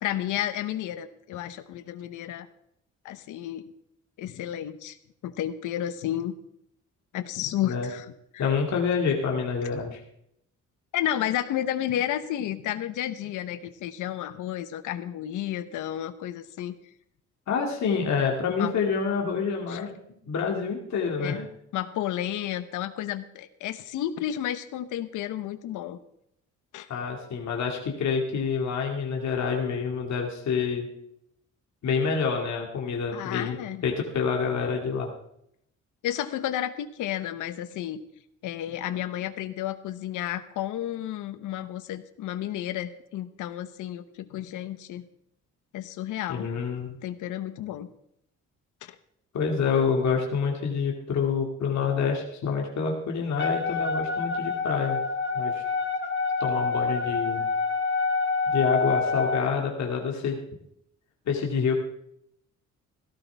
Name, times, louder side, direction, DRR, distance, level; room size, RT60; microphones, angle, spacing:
voice 1, 0.0-2.5 3.0-3.6 4.2-5.0 5.2-6.3 7.1-8.1 8.3-8.5 10.9-16.7 18.6-18.7 19.7-19.9 21.2-21.4 21.7-26.0 26.7-26.9 33.1-33.8 36.0-38.0 38.4-45.1 45.7-46.5 47.0-47.9 48.8-49.0, left 12 dB, 85° left, 12 dB, 1.0 m, -32 dB
voice 2, 8.4-10.0 17.5-20.0 20.2-21.5 26.9-30.9 31.8-33.6 33.8-35.1 46.3-47.0 49.3-55.0 55.3-55.6 56.4-57.5 58.5-60.4 61.3-61.7, left 5 dB, 65° left, 0 dB, 2.3 m, -27 dB
Wind instrument woodwind instrument, 53.4-59.5, left 4 dB, 40° left, 1.6 m, -27 dB
16.5 x 13.0 x 3.5 m, 0.75 s
cardioid pair, 90°, 30 cm